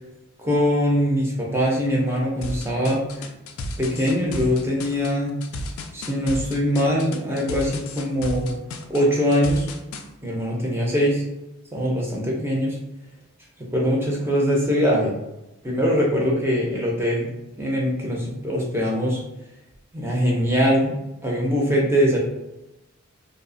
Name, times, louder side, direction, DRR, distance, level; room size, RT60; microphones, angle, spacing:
voice 1, 0.4-3.3 3.8-5.4 5.9-8.5 8.9-9.7 10.2-11.2 11.7-12.8 13.7-15.1 15.6-17.3 17.6-19.2 19.9-21.0 21.2-22.2, equal, 10° right, -3 dB, 0.4 m, -22 dB
sound 1, 2.4-10.0, left 1 dB, 70° left, 0.3 m, -33 dB
2.8 x 2.0 x 2.5 m, 0.94 s
head